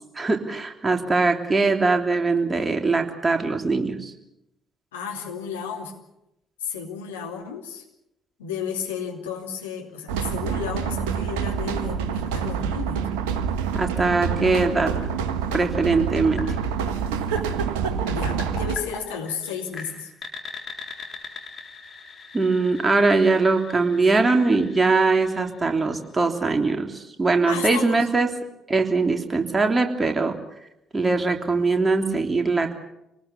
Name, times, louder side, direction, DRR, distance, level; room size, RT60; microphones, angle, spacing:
voice 1, 0.1-4.1 13.7-14.9 15.5-16.4 22.3-28.3 28.7-30.3 30.9-32.7, right 3 dB, 25° right, 4 dB, 3.2 m, -21 dB
voice 2, 4.9-5.9 6.6-7.8 8.4-13.1 18.0-20.1 27.5-28.3, left 6 dB, 80° left, 2 dB, 2.7 m, -33 dB
sound 1, 10.1-18.8, right 7 dB, 70° right, 1.3 m, -27 dB
sound 2, 16.4-26.2, left 4 dB, 45° left, 4.1 m, -41 dB
26.5 x 19.5 x 7.0 m, 0.86 s
figure-of-eight pair, 45°, 0 cm